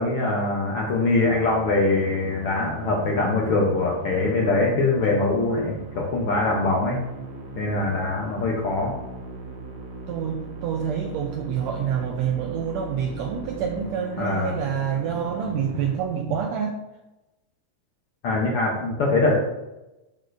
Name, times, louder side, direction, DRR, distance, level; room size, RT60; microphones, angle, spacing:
voice 1, 0.0-7.0 7.6-8.9 14.2-14.5 18.2-19.4, left 2 dB, 70° left, -2 dB, 1.4 m, -23 dB
Musical instrument, 1.2-16.0, right 3 dB, 60° right, 1.7 m, -39 dB
voice 2, 10.1-16.8, right 7 dB, 80° right, 2 dB, 1.6 m, -27 dB
8.7 x 6.7 x 2.6 m, 0.99 s
omnidirectional pair, 3.7 m